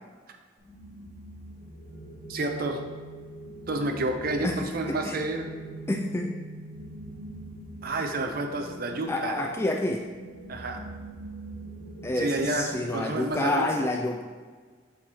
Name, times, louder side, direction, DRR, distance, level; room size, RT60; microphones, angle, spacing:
sound 1, 0.6-13.3, right 2 dB, 35° right, 1.7 m, -43 dB
voice 1, 2.3-2.8 3.7-5.5 7.8-9.4 10.5-10.8 12.2-13.8, right 2 dB, 50° right, 4 dB, 0.6 m, -30 dB
voice 2, 5.9-6.3 9.1-10.0 12.0-14.2, left 1 dB, 15° left, 1 dB, 0.3 m, -28 dB
7.8 x 4.2 x 3.0 m, 1.5 s
head